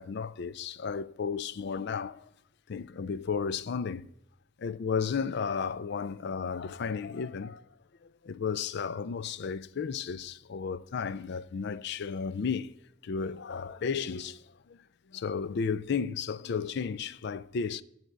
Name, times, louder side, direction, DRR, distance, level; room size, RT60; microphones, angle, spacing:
voice 1, 0.0-2.3 2.7-4.1 4.6-7.6 8.2-12.7 13.0-14.8 15.1-17.8, left 6 dB, 55° left, 0.4 m, -33 dB
8.5 x 6.6 x 7.9 m
head